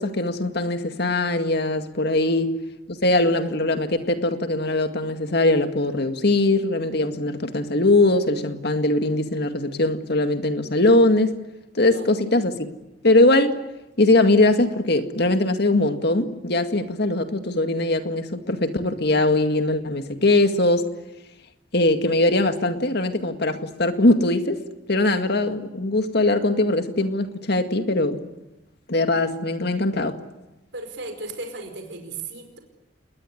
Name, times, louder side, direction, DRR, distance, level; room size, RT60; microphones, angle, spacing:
voice 1, 0.0-2.6 3.0-11.4 11.7-12.7 13.0-13.6 14.0-20.9 21.7-24.6 24.9-28.2 28.9-30.2, left 2 dB, 55° left, 2.1 m, -21 dB
voice 2, 30.7-32.6, right 3 dB, 70° right, 5.0 m, -36 dB
28.0 x 21.0 x 10.0 m
head